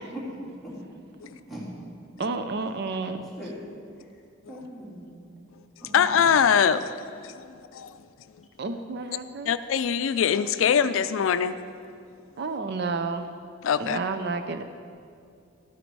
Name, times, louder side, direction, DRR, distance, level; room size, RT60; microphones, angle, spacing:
voice 1, 0.1-0.7 1.5-1.7 3.4-3.6 3.9-4.1 4.5-5.3 5.8-6.3, equal, ahead, -8 dB, 3.0 m, -40 dB
voice 2, 2.2-3.3 8.6-9.5 12.4-13.3 13.8-14.6, right 3 dB, 55° right, 9 dB, 0.5 m, -30 dB
voice 3, 5.8-8.1 8.3-8.5 9.5-11.6 13.6-14.0, left 7 dB, 85° left, 13 dB, 0.4 m, -23 dB
13.0 x 9.2 x 4.7 m, 2.4 s
head